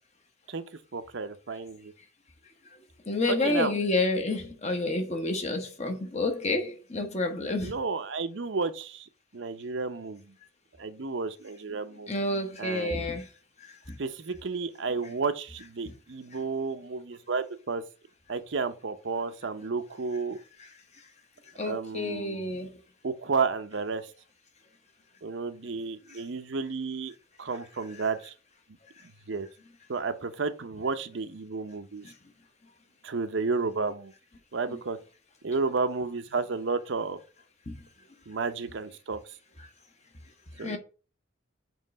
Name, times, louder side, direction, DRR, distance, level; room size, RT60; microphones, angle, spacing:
voice 1, 0.9-1.9 3.3-3.7 7.6-9.1 9.3-10.3 10.8-12.1 12.6-13.1 14.0-17.8 18.3-20.4 21.6-22.5 23.0-24.0 25.2-27.1 27.4-28.3 29.3-29.5 29.9-32.1 33.0-34.1 34.5-35.0 35.4-37.2 38.3-39.2 40.6-40.8, right 4 dB, 60° right, 0.6 m, -32 dB
voice 2, 3.1-7.7 12.1-13.2 20.6-20.7 21.6-22.7 32.0-32.1 37.7-37.8 40.6-40.8, left 2 dB, 35° left, 1.0 m, -29 dB
7.3 x 3.1 x 5.2 m
head